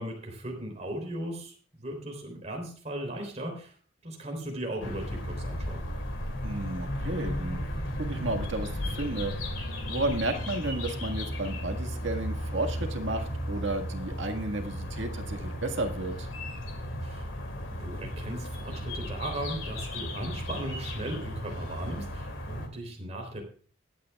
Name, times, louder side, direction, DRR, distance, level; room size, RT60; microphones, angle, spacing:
voice 1, 0.0-3.8 4.0-5.8 17.0-17.3 17.8-23.4, right 1 dB, 35° right, 1 dB, 3.6 m, -37 dB
sound 1, 4.8-22.7, equal, 80° left, 2.6 m, -35 dB
voice 2, 6.4-7.7 8.0-9.3 9.9-16.3, right 2 dB, 70° right, 4 dB, 1.9 m, -33 dB
22.5 x 8.8 x 2.4 m, 0.42 s
head